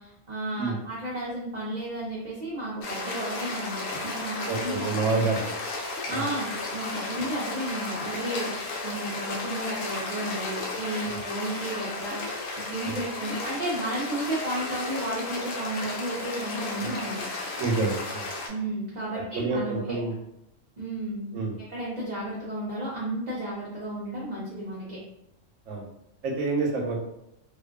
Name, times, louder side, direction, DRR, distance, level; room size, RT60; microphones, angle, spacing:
voice 1, 0.0-5.4 6.1-8.5 8.8-12.4 12.7-17.3 18.5-20.0 20.8-21.3 21.7-25.0, right 1 dB, 50° right, -6 dB, 0.5 m, -33 dB
sound 1, 2.8-18.5, left 3 dB, 85° left, 1.0 m, -34 dB
voice 2, 4.5-5.4 6.1-6.3 12.8-13.0 16.8-16.9 17.6-18.3 19.4-20.2 21.3-21.6 25.7-25.8 26.2-27.0, right 3 dB, 90° right, 0 dB, 1.0 m, -28 dB
2.5 x 2.3 x 2.2 m, 0.80 s
omnidirectional pair, 1.3 m